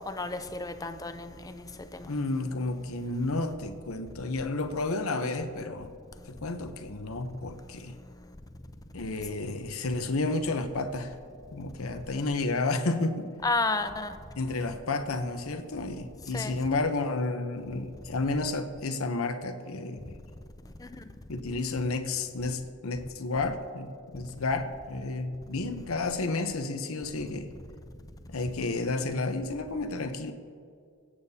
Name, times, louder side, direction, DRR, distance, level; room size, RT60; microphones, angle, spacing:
voice 1, 0.1-1.6 2.0-2.1 13.4-14.1 16.3-16.5 20.8-20.9, left 3 dB, 15° left, 9 dB, 0.5 m, -31 dB
voice 2, 2.1-5.9 6.3-8.0 8.9-11.2 11.5-13.3 14.4-20.2 21.3-27.5 28.3-30.3, left 3 dB, 80° left, 7 dB, 0.8 m, -31 dB
23.0 x 8.7 x 2.8 m, 2.3 s
head